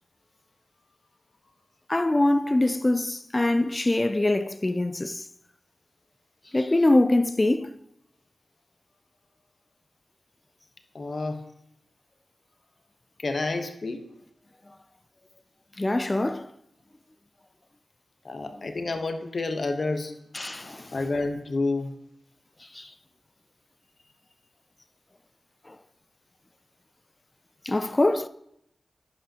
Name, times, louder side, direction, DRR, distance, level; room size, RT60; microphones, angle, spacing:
voice 1, 1.9-5.3 6.5-7.8 15.8-16.5 20.3-20.9 22.7-22.9 25.7-25.8 27.6-28.3, left 2 dB, 25° left, 0.3 m, -23 dB
voice 2, 10.9-11.4 13.2-14.0 18.2-20.1 20.9-21.9, left 3 dB, 55° left, 0.9 m, -29 dB
10.5 x 5.8 x 2.8 m
cardioid pair, 60°, 0 cm